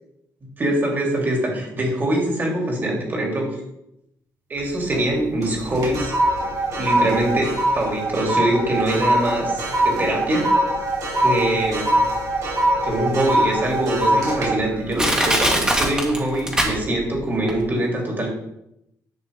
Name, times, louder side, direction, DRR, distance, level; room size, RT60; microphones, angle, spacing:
voice 1, 0.6-3.6 4.5-6.1 6.7-10.5 11.2-12.0 12.8-18.3, right 1 dB, 30° right, -1 dB, 2.9 m, -23 dB
sound 1, 4.6-5.1 5.4-16.0 16.4-16.7, right 1 dB, 65° right, 3.4 m, -23 dB
Crushing, 12.9-13.0 13.6-13.7 14.4-14.5 15.0-17.2 17.5-17.6, right 1 dB, 10° right, 1.8 m, -21 dB
10.5 x 6.4 x 3.5 m, 0.81 s
cardioid pair, 115°, 6 cm